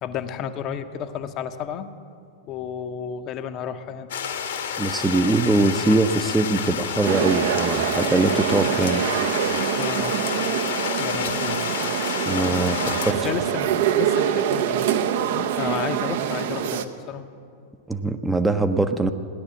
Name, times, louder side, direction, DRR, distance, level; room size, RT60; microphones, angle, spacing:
voice 1, 0.0-1.9 2.5-4.1 4.5-4.7 9.7-10.2 11.0-11.7 13.1-14.9 15.2-17.2, left 8 dB, 35° left, 9 dB, 0.8 m, -32 dB
sound 1, 4.1-13.1, left 7 dB, 60° left, 1.2 m, -29 dB
voice 2, 4.8-9.0 12.3-13.2 17.9-19.1, right 2 dB, 10° right, 8 dB, 0.6 m, -22 dB
sound 2, 7.0-16.9, right 9 dB, 55° right, 0.7 m, -25 dB
16.5 x 10.5 x 7.5 m, 2.4 s
figure-of-eight pair, 90°, 0 cm